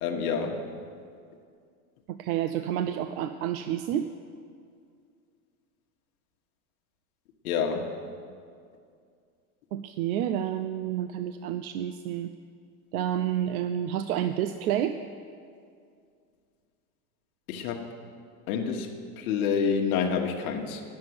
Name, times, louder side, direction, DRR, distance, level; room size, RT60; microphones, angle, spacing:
voice 1, 0.0-0.6 7.4-7.9 17.5-17.9 18.5-20.8, left 6 dB, 70° left, 3 dB, 1.4 m, -28 dB
voice 2, 2.1-4.1 9.7-12.3 12.9-14.9, right 10 dB, 70° right, 9 dB, 0.6 m, -29 dB
10.5 x 7.6 x 9.5 m, 2.3 s
supercardioid pair, 160°, 45 cm